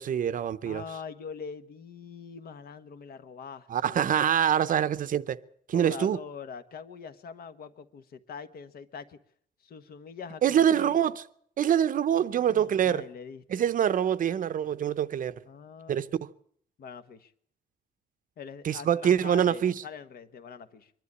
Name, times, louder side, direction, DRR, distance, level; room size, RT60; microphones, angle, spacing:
voice 1, 0.0-0.8 3.7-5.4 5.7-6.2 10.4-11.2 11.6-13.0 13.5-15.3 15.9-16.1 18.6-19.7, right 9 dB, 50° right, 0.7 m, -25 dB
voice 2, 0.6-4.0 5.7-9.2 9.6-11.0 12.1-13.7 15.4-16.1 16.8-17.3 18.4-20.9, left 6 dB, 55° left, 1.3 m, -43 dB
23.5 x 11.5 x 9.6 m
wide cardioid pair, 175°, 18 cm